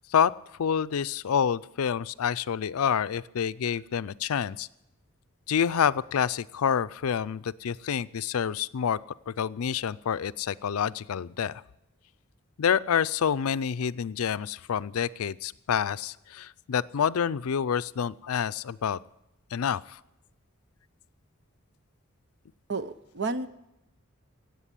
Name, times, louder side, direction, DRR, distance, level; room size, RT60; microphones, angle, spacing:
voice 1, 0.6-4.7 5.5-9.0 9.3-11.6 12.6-19.0 19.5-20.0, left 7 dB, 85° left, 17 dB, 0.4 m, -28 dB
voice 2, 22.7-23.5, right 3 dB, 55° right, 12 dB, 0.8 m, -31 dB
17.5 x 8.1 x 8.3 m, 0.86 s
head